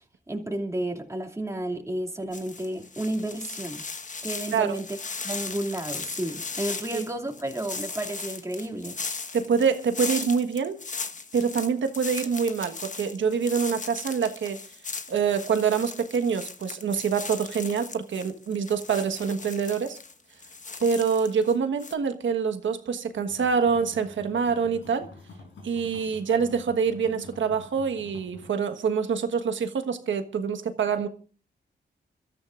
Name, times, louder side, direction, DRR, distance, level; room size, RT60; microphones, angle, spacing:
voice 1, 0.3-3.8 4.2-4.9 5.2-9.0, right 1 dB, 15° right, 2.6 m, -32 dB
sound 1, 2.3-21.5 21.8-21.9, left 4 dB, 40° left, 1.4 m, -37 dB
voice 2, 9.3-10.8 11.3-14.6 15.1-20.0 20.8-25.1 25.6-31.1, right 6 dB, 85° right, 1.4 m, -26 dB
sound 2, 23.3-28.5, left 3 dB, 90° left, 4.4 m, -47 dB
28.5 x 13.5 x 2.5 m
cardioid pair, 80°, 19 cm